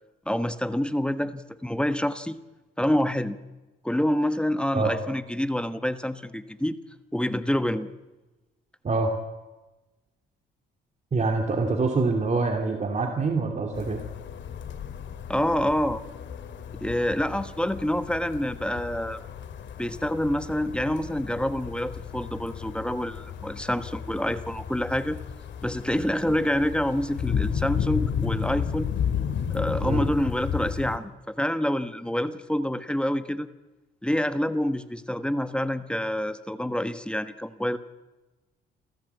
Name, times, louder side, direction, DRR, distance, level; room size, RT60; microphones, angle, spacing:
voice 1, 0.3-2.4 2.8-3.4 3.8-6.8 7.1-7.9 15.3-16.0 16.8-19.2 19.8-25.2 25.6-28.9 29.5-33.5 34.0-37.8, equal, 5° left, 11 dB, 1.3 m, -27 dB
voice 2, 11.1-14.0 29.8-30.1, right 3 dB, 35° right, 3 dB, 2.9 m, -25 dB
sound 1, 13.7-31.0, left 8 dB, 70° left, 2.5 m, -33 dB
28.0 x 14.5 x 8.4 m, 1.1 s
cardioid pair, 90°, 20 cm